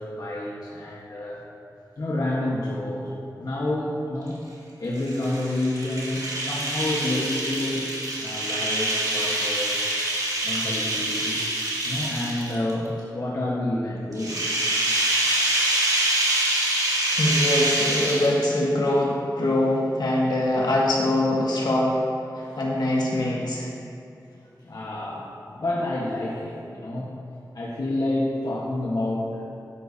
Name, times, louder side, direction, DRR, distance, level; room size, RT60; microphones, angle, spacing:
voice 1, 0.0-1.4 2.0-4.4 4.8-7.9 8.2-9.8 10.4-11.5 11.8-14.4 22.4-22.6 24.6-27.1 27.5-29.4, left 1 dB, 60° left, -5 dB, 1.3 m, -29 dB
sound 1, 5.0-12.7 14.1-18.6, right 1 dB, 60° right, 2.2 m, -25 dB
voice 2, 17.1-22.0 22.4-23.7, left 1 dB, 80° left, -4 dB, 1.9 m, -23 dB
12.5 x 10.0 x 2.8 m, 2.6 s
wide cardioid pair, 90°, 7 cm